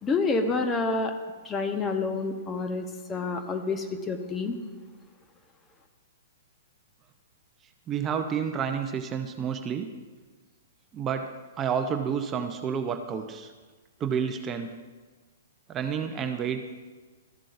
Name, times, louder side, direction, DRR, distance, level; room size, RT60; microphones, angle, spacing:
voice 1, 0.0-1.1 1.4-4.5, left 3 dB, 20° left, 6 dB, 0.8 m, -28 dB
voice 2, 7.9-9.9 10.9-11.3 11.6-13.5 14.0-14.7 15.7-16.8, right 7 dB, 25° right, 6 dB, 0.6 m, -30 dB
13.5 x 7.5 x 2.5 m, 1.3 s
hypercardioid pair, 120°, 0 cm